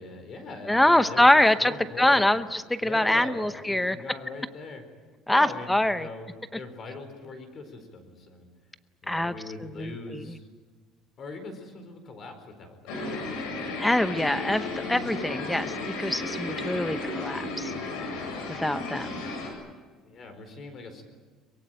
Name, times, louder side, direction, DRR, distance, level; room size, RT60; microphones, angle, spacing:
voice 1, 0.0-1.3 1.6-2.3 2.8-4.8 5.3-8.5 9.0-10.5 11.2-13.1 20.0-21.0, left 3 dB, 35° left, 7 dB, 4.4 m, -41 dB
voice 2, 0.7-1.7 2.0-4.0 5.3-6.1 9.1-9.3 9.6-10.3 13.8-17.7 18.5-19.1, left 1 dB, 5° left, 12 dB, 0.8 m, -24 dB
sound 1, 12.9-19.5, left 2 dB, 80° left, 7.8 m, -34 dB
23.5 x 22.5 x 9.2 m, 1.4 s
cardioid pair, 170°, 0 cm